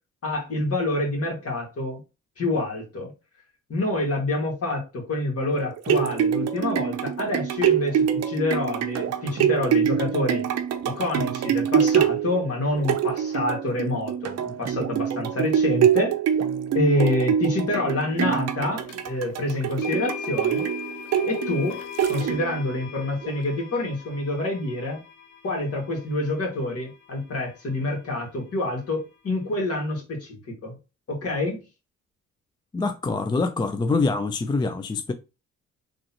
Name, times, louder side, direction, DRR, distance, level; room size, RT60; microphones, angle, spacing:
voice 1, 0.2-2.0 2.4-3.1 3.7-10.5 10.8-16.1 16.7-20.7 21.2-21.8 22.1-25.0 25.4-30.8 31.1-31.6, left 2 dB, 50° left, 1.9 m, -27 dB
sound 1, 5.6-22.7 23.2-23.3, right 9 dB, 60° right, 0.6 m, -25 dB
sound 2, 18.9-19.0 19.8-27.8, left 9 dB, 75° left, 0.9 m, -39 dB
voice 2, 32.7-35.1, left 3 dB, 15° left, 0.3 m, -25 dB
3.8 x 3.0 x 2.9 m
cardioid pair, 90°, 30 cm